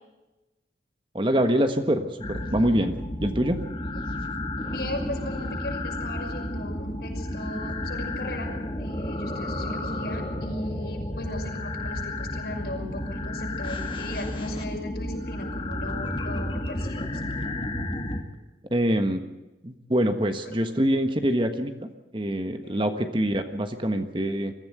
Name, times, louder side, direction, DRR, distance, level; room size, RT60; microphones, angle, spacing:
voice 1, 1.1-2.9 3.2-3.6 18.7-19.2 19.6-24.5, equal, 25° right, 7 dB, 1.5 m, -25 dB
sound 1, 2.2-18.2, left 1 dB, 30° left, 2.2 m, -32 dB
voice 2, 4.7-17.1 20.5-20.6 22.6-23.0, left 1 dB, 65° left, 1 dB, 5.9 m, -37 dB
22.5 x 15.0 x 8.0 m, 1.0 s
head